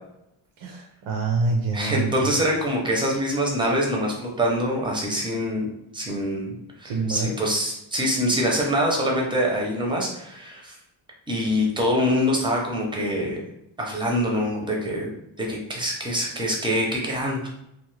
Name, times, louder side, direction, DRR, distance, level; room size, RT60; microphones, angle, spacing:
voice 1, 0.6-2.3 6.8-7.3, right 4 dB, 75° right, 1 dB, 0.6 m, -26 dB
voice 2, 1.7-5.7 5.9-10.7 11.3-13.4 13.8-15.1 15.4-17.5, equal, 10° right, -1 dB, 0.6 m, -25 dB
2.5 x 2.4 x 3.1 m, 0.81 s
wide cardioid pair, 130°, 48 cm